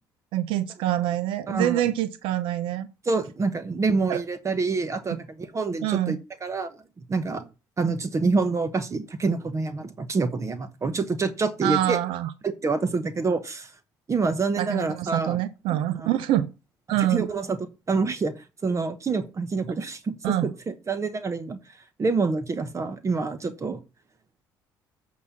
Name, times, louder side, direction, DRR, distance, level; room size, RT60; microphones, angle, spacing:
voice 1, 0.3-2.9 4.1-4.2 5.8-6.2 11.6-12.3 14.6-16.5 16.9-17.2 20.2-20.5, right 13 dB, 75° right, 0.7 m, -25 dB
voice 2, 1.5-1.9 3.0-6.8 7.1-7.5 7.8-12.0 12.4-13.7 14.1-15.4 16.0-16.1 17.0-17.6 17.9-18.3 18.6-21.6 22.0-23.8, right 4 dB, 35° right, 1.1 m, -27 dB
8.3 x 4.2 x 7.1 m
supercardioid pair, 65°, 9 cm